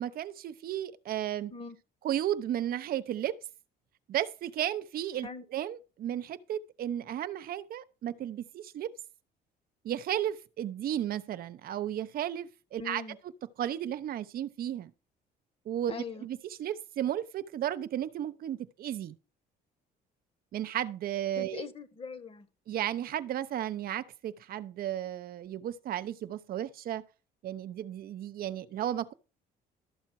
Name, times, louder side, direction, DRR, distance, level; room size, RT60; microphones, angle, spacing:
voice 1, 0.0-1.5 2.0-3.4 4.1-8.9 9.8-13.0 13.6-14.9 15.6-15.9 16.2-19.2 20.5-21.6 22.7-27.0 27.4-29.1, right 11 dB, 60° right, 0.9 m, -34 dB
voice 2, 12.8-13.2 15.9-16.2 21.4-22.5, left 5 dB, 35° left, 1.6 m, -41 dB
12.5 x 7.2 x 4.8 m
cardioid pair, 110°, 17 cm